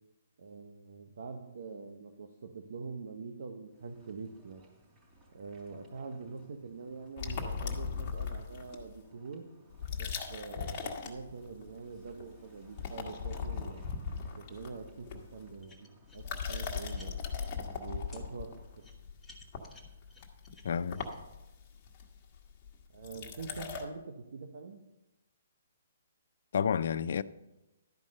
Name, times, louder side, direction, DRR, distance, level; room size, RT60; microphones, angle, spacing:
voice 1, 0.4-4.6 5.3-9.5 10.0-13.8 14.4-15.9 16.1-17.2 17.7-18.6 22.9-24.8, right 4 dB, 70° right, 1.1 m, -45 dB
sound 1, 3.7-18.9, equal, 25° right, 3.9 m, -63 dB
sound 2, 7.2-9.0 9.7-11.7 12.0-12.4 12.6-15.6 16.1-23.8, left 6 dB, 30° left, 1.4 m, -39 dB
sound 3, 15.6-17.5 18.1-18.2 18.8-21.2, left 1 dB, 5° left, 1.2 m, -56 dB
voice 2, 20.6-21.0 26.5-27.2, left 7 dB, 60° left, 0.4 m, -30 dB
12.0 x 5.4 x 6.5 m
hypercardioid pair, 155°, 0 cm